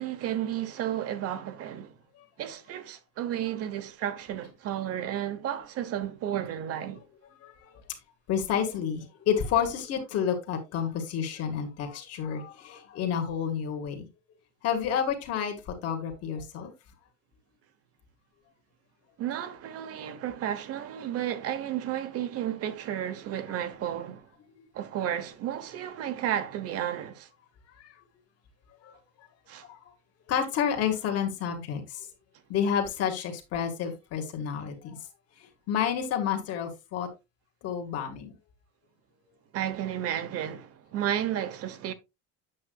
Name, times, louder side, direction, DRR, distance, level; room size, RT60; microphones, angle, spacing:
voice 1, 0.0-2.0 2.4-7.0 19.2-24.3 24.7-27.3 29.5-29.7 39.5-41.9, right 10 dB, 45° right, 1.1 m, -32 dB
voice 2, 8.3-14.1 14.6-15.6 15.8-16.7 27.8-27.9 28.8-28.9 29.7-29.8 30.3-32.1 32.5-35.0 35.7-37.1 37.6-38.4, left 8 dB, 50° left, 1.9 m, -29 dB
8.6 x 7.4 x 2.4 m
cardioid pair, 180°, 33 cm